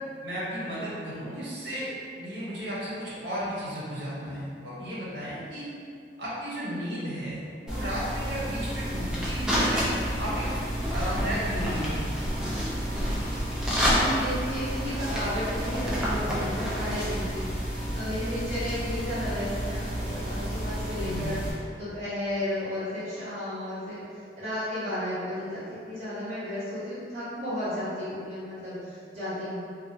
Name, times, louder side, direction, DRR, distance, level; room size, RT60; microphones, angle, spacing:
voice 1, 0.2-1.9 2.2-5.7 6.2-9.9 10.2-10.5 10.9-12.2 12.9-13.1 21.0-21.3, equal, 80° right, -9 dB, 1.0 m, -34 dB
sound 1, 7.7-21.5, equal, 5° right, 0.4 m, -29 dB
voice 2, 13.9-17.4 17.9-21.4 21.8-24.0 24.4-29.6, left 1 dB, 35° right, -14 dB, 1.3 m, -33 dB
2.8 x 2.2 x 2.6 m, 2.3 s
head